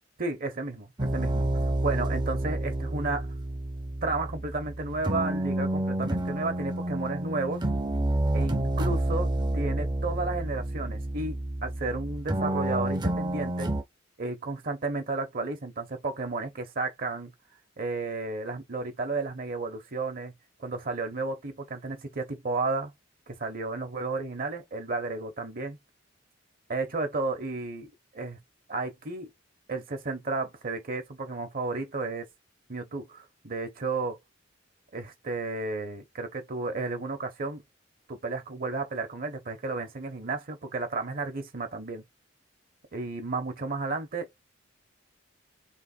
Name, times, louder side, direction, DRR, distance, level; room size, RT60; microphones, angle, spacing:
voice 1, 0.2-1.5 1.8-3.3 4.0-7.6 8.3-13.7 14.2-17.3 17.8-20.3 20.6-22.9 23.3-25.8 26.7-28.4 28.7-29.3 29.7-32.3 32.7-34.2 34.9-37.6 38.1-42.0 42.9-44.5, right 3 dB, 50° right, 1.0 m, -33 dB
sound 1, 1.0-13.8, right 1 dB, 25° right, 0.6 m, -29 dB
3.4 x 3.0 x 4.3 m
head